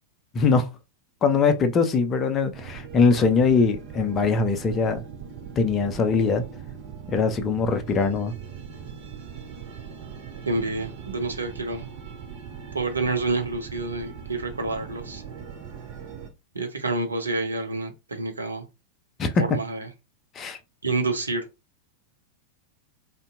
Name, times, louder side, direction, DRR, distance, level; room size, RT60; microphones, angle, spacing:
voice 1, 0.3-0.7 1.2-5.0 5.6-6.4 7.1-8.3 19.2-19.3 20.4-20.6, left 4 dB, 25° left, 0.5 m, -22 dB
sound 1, 2.5-16.3, right 7 dB, 45° right, 0.8 m, -40 dB
voice 2, 10.5-11.9 12.7-15.2 16.5-18.7 19.4-19.9 20.8-21.4, right 3 dB, 75° right, 0.6 m, -28 dB
2.6 x 2.2 x 3.5 m
figure-of-eight pair, 90°, 0 cm